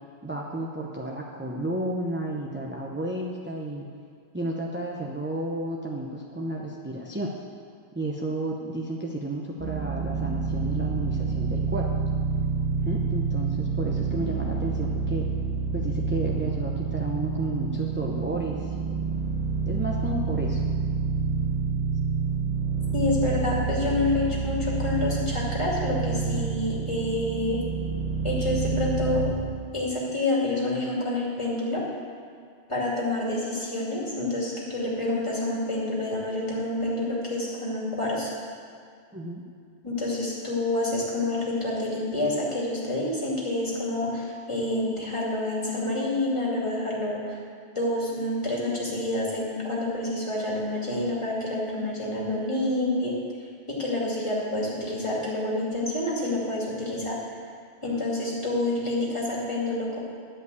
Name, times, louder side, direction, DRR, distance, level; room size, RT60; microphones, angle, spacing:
voice 1, 0.2-3.9 4.3-7.3 7.9-11.9 12.8-15.2 15.7-18.8 19.7-20.6 39.1-39.4, right 1 dB, 10° right, -2 dB, 0.7 m, -32 dB
sound 1, 9.6-29.3, right 5 dB, 75° right, 1.8 m, -28 dB
voice 2, 22.9-27.6 28.2-29.3 29.7-31.8 32.7-38.3 39.8-47.4 47.7-53.1 53.8-57.2 57.8-60.0, left 2 dB, 30° left, -5 dB, 2.4 m, -28 dB
11.5 x 5.3 x 8.2 m, 2.3 s
omnidirectional pair, 1.1 m